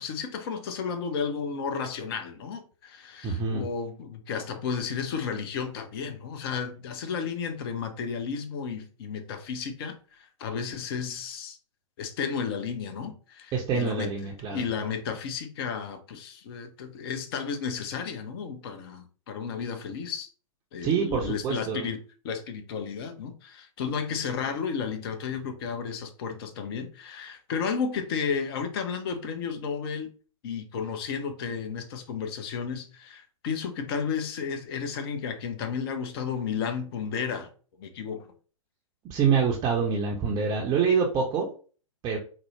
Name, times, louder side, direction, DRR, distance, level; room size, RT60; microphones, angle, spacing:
voice 1, 0.0-11.6 12.0-20.3 20.7-30.1 30.4-37.5 37.8-38.2, left 6 dB, 40° left, 0.6 m, -33 dB
voice 2, 3.2-3.6 13.5-14.6 20.8-21.9 39.1-41.5 42.0-42.2, right 6 dB, 20° right, 0.5 m, -26 dB
4.3 x 2.0 x 3.1 m
figure-of-eight pair, 115°, 18 cm